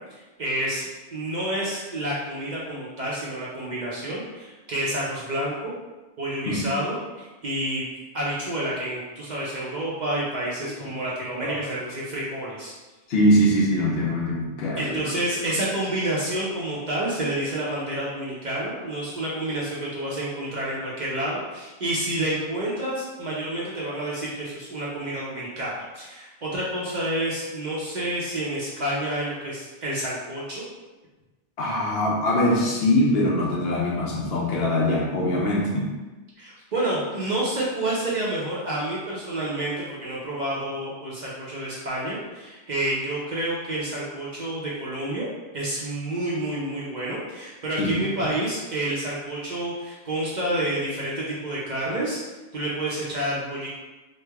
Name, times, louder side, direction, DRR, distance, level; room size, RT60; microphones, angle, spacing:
voice 1, 0.1-5.7 6.2-7.8 8.1-12.7 14.8-30.6 36.4-45.3 45.5-52.2 52.5-53.7, right 1 dB, 50° right, -6 dB, 0.6 m, -29 dB
voice 2, 13.1-15.0 31.6-35.9 47.8-48.3, left 1 dB, 65° left, -3 dB, 0.8 m, -22 dB
3.2 x 2.0 x 3.3 m, 1.2 s
omnidirectional pair, 1.2 m